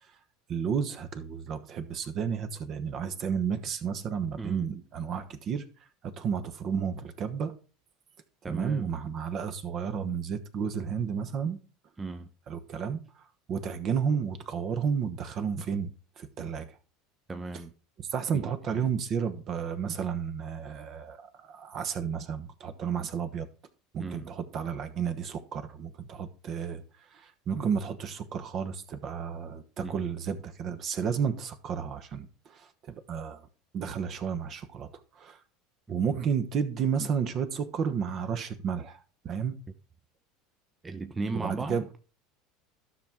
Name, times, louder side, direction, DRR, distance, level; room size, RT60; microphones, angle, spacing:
voice 1, 0.5-5.6 6.0-7.5 8.5-11.6 12.5-13.0 13.5-15.9 16.2-16.8 18.0-23.5 23.9-26.8 27.1-33.4 33.7-35.4 35.9-39.0 39.2-39.6 41.3-41.8, right 7 dB, 45° right, 1.2 m, -32 dB
voice 2, 8.4-8.9 12.0-12.3 17.3-17.7 18.3-18.8 24.0-24.3 29.8-30.1 35.9-36.0 40.8-41.9, right 3 dB, 20° right, 0.7 m, -36 dB
12.5 x 5.9 x 3.6 m
hypercardioid pair, 85°, 0 cm